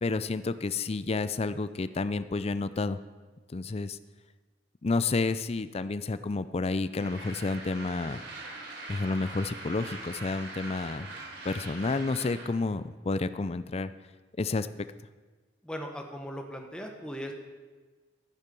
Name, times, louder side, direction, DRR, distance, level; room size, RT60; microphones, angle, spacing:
voice 1, 0.0-3.0 3.5-4.0 4.8-8.2 8.9-11.1 11.4-13.9 14.4-14.7, left 3 dB, 35° left, 13 dB, 0.5 m, -30 dB
sound 1, 7.0-12.4, right 2 dB, 80° right, 3.8 m, -42 dB
voice 2, 15.6-17.3, equal, 5° left, 2 dB, 1.4 m, -38 dB
13.0 x 10.0 x 5.3 m, 1.3 s
head